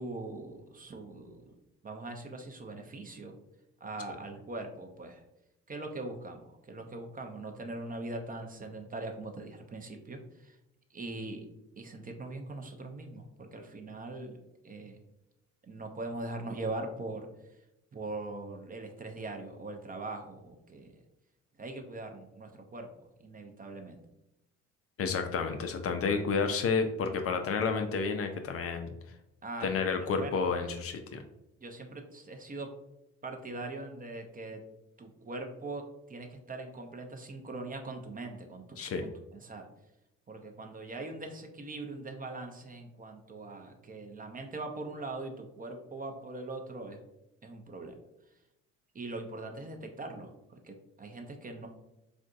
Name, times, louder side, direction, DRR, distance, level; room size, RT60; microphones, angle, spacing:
voice 1, 0.0-1.5 1.8-3.4 3.8-5.2 5.7-10.6 10.9-11.4 11.8-14.4 14.6-15.0 15.7-17.6 17.9-20.9 21.6-22.9 23.2-24.0 29.4-30.4 31.6-32.7 33.2-34.6 35.0-39.7 40.3-47.0 47.4-47.9 48.9-51.7, right 2 dB, 25° right, 4 dB, 0.5 m, -41 dB
voice 2, 25.0-28.9 29.6-31.2 38.8-39.0, left 5 dB, 40° left, 6 dB, 0.4 m, -30 dB
3.6 x 2.5 x 2.4 m, 0.90 s
hypercardioid pair, 55°, 36 cm